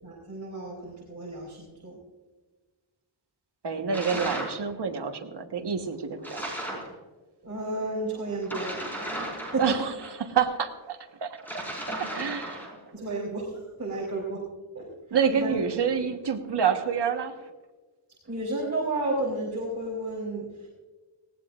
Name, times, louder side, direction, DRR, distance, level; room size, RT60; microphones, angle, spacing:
voice 1, 0.0-2.0 7.4-9.6 12.9-14.5 14.7-14.9 15.3-15.5 18.3-20.7, right 2 dB, 35° right, -5 dB, 3.6 m, -32 dB
voice 2, 3.6-6.4 9.6-9.9 10.2-12.7 15.1-17.4, right 7 dB, 55° right, 4 dB, 1.4 m, -28 dB
sound 1, 3.9-4.6 6.2-6.9 8.4-10.1 11.4-12.8, right 1 dB, 5° left, 5.0 m, -35 dB
19.5 x 17.0 x 2.5 m, 1.3 s
wide cardioid pair, 160°, 49 cm